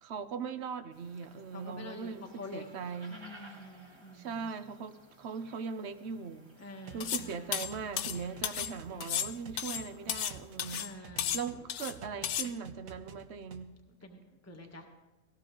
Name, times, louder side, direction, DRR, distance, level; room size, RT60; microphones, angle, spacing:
voice 1, 0.0-3.2 4.1-6.6 6.9-13.7, right 6 dB, 55° right, 0.9 m, -40 dB
sound 1, 0.9-11.0, right 1 dB, 20° right, 1.2 m, -58 dB
voice 2, 1.5-2.6 3.1-4.4 6.6-7.6 8.9-9.1 10.7-11.4 14.0-14.2 14.5-14.9, left 2 dB, 10° left, 1.4 m, -47 dB
sound 2, 6.9-11.6 11.9-13.6, right 6 dB, 75° right, 1.4 m, -50 dB
sound 3, 7.0-7.3 7.5-8.7 9.0-10.3 10.6-10.9 11.2-11.9 12.2-12.5, left 10 dB, 65° left, 0.8 m, -34 dB
18.0 x 15.5 x 3.8 m
omnidirectional pair, 1.5 m